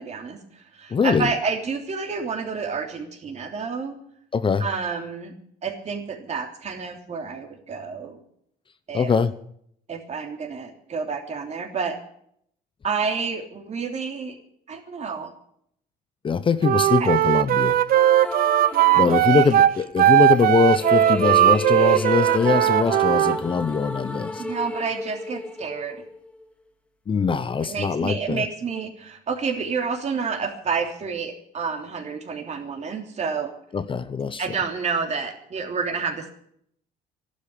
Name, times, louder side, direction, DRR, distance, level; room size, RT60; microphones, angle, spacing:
voice 1, 0.0-3.9 4.6-5.3 5.6-8.2 8.9-9.1 9.9-12.0 12.8-14.4 14.7-15.3 17.0-17.1 18.7-19.4 24.4-26.0 27.6-33.5 34.4-36.3, right 5 dB, 40° right, 4 dB, 3.1 m, -29 dB
voice 2, 0.9-1.3 4.3-4.7 8.9-9.3 16.2-17.8 19.0-24.5 27.1-28.5 33.7-34.4, left 5 dB, 30° left, 12 dB, 0.8 m, -22 dB
Wind instrument woodwind instrument, 16.6-23.4, right 13 dB, 60° right, 0.7 m, -18 dB
sound 1, 17.9-19.6 20.3-26.4, left 1 dB, 5° left, 1.9 m, -32 dB
13.5 x 12.0 x 8.4 m, 0.68 s
cardioid pair, 110°, 17 cm